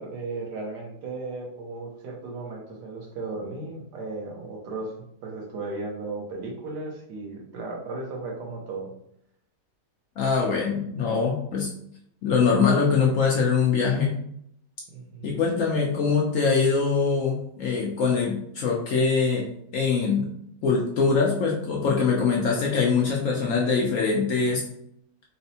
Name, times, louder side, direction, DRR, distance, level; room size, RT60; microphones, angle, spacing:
voice 1, 0.0-4.9 5.2-8.9 14.9-15.3 15.6-15.7, right 3 dB, 85° right, -1 dB, 1.5 m, -35 dB
voice 2, 10.2-11.7 12.2-14.1 15.2-19.4 19.7-20.3 20.6-24.6, left 5 dB, 65° left, -2 dB, 0.8 m, -23 dB
4.2 x 2.0 x 2.7 m, 0.71 s
omnidirectional pair, 1.8 m